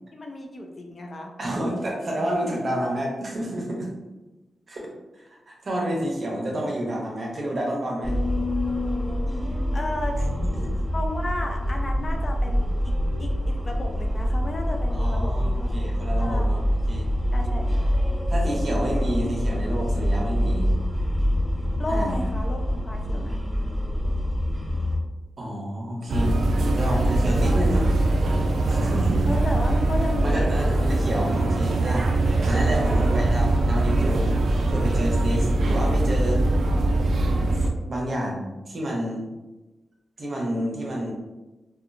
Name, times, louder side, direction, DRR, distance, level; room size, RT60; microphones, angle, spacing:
voice 1, 0.1-1.3 9.7-10.1 10.9-15.7 16.2-16.7 17.3-18.2 21.8-23.4 29.3-30.9 32.8-33.2, left 1 dB, 40° left, 2 dB, 0.4 m, -33 dB
voice 2, 1.4-3.9 4.7-4.9 5.2-8.2 10.1-10.7 14.9-16.6 16.9-17.1 18.3-20.7 21.9-22.2 25.4-27.9 28.7-29.2 30.2-34.3 34.7-36.4 37.8-39.3 40.2-41.1, right 1 dB, 50° right, -2 dB, 0.7 m, -29 dB
sound 1, 8.0-25.0, equal, 5° left, 0.8 m, -25 dB
sound 2, 26.1-37.7, right 2 dB, 75° right, 0.3 m, -22 dB
2.8 x 2.2 x 2.5 m, 1.1 s
cardioid pair, 85°, 0 cm